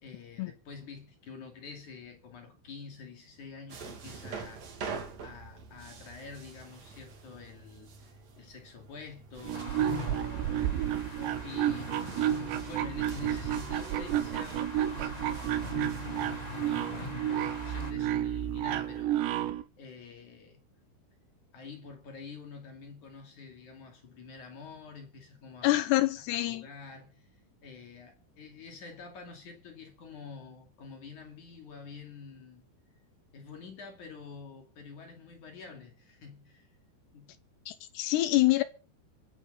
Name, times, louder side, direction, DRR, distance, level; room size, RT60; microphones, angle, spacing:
voice 1, 0.0-4.6 5.2-10.9 11.2-20.6 21.5-25.9 26.2-32.7 33.3-36.7 37.1-37.4, left 5 dB, 45° left, 3.4 m, -48 dB
sound 1, 3.7-19.0, right 5 dB, 45° right, 3.0 m, -47 dB
sound 2, 9.4-19.6, right 11 dB, 75° right, 3.2 m, -31 dB
sound 3, 9.5-17.9, left 2 dB, 10° left, 2.0 m, -42 dB
voice 2, 25.6-26.6 37.7-38.6, left 17 dB, 75° left, 2.6 m, -26 dB
25.5 x 9.9 x 4.1 m
omnidirectional pair, 5.6 m